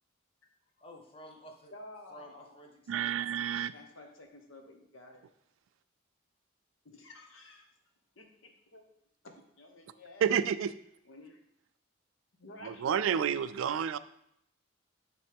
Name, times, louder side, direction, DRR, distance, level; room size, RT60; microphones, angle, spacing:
voice 1, 0.8-1.7 2.1-3.4, equal, 25° left, 2 dB, 0.8 m, -52 dB
voice 2, 1.7-2.6 3.5-5.2 6.8-7.7 8.2-8.8 9.2-10.5 11.1-11.4 12.4-12.8 13.2-13.3 13.6-13.7, left 2 dB, 80° left, 4 dB, 1.0 m, -52 dB
voice 3, 2.9-3.7 10.2-10.7 12.6-14.0, right 8 dB, 80° right, 15 dB, 0.3 m, -30 dB
9.4 x 3.2 x 3.5 m, 0.75 s
head